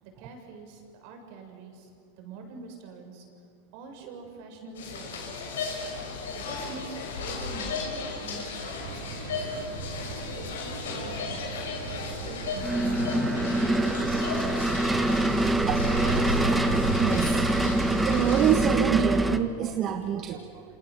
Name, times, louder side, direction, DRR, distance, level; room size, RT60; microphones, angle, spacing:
voice 1, 0.0-1.9 2.2-3.3 3.7-5.7 6.3-7.9 8.2-9.5 10.1-11.5 11.9-13.2 13.4-15.2, right 4 dB, 55° right, 3 dB, 7.0 m, -45 dB
sound 1, 4.7-18.7, left 4 dB, 80° left, 7.1 m, -35 dB
sound 2, 8.8-19.0, right 4 dB, 80° right, 6.0 m, -35 dB
sound 3, 12.6-19.4, right 1 dB, 10° right, 1.2 m, -25 dB
voice 2, 16.1-17.4 18.0-20.6, right 9 dB, 35° right, 6 dB, 1.6 m, -27 dB
28.5 x 27.0 x 7.8 m, 2.6 s
hypercardioid pair, 130°, 0 cm